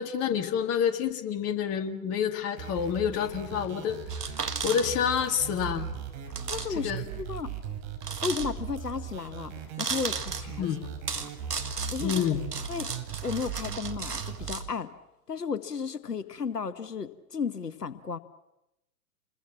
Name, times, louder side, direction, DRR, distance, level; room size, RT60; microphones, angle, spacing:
voice 1, 0.0-4.3 4.6-5.9 6.7-7.0 10.6-10.8 12.0-12.4, left 8 dB, 30° left, 7 dB, 2.1 m, -28 dB
sound 1, 2.6-14.6, right 7 dB, 35° right, 5.2 m, -38 dB
sound 2, 4.1-5.3 5.5-5.6 6.3-6.7 7.0-7.1 8.0-8.8 9.8-10.5 11.1-14.6, right 5 dB, 80° right, 1.8 m, -35 dB
voice 2, 6.5-6.9 7.2-7.5 8.2-9.5 9.8-10.7 11.2-11.3 11.9-12.2 12.7-12.9 13.2-14.9 15.3-18.2, left 5 dB, 85° left, 14 dB, 1.1 m, -33 dB
28.5 x 22.0 x 7.4 m, 0.89 s
figure-of-eight pair, 100°, 46 cm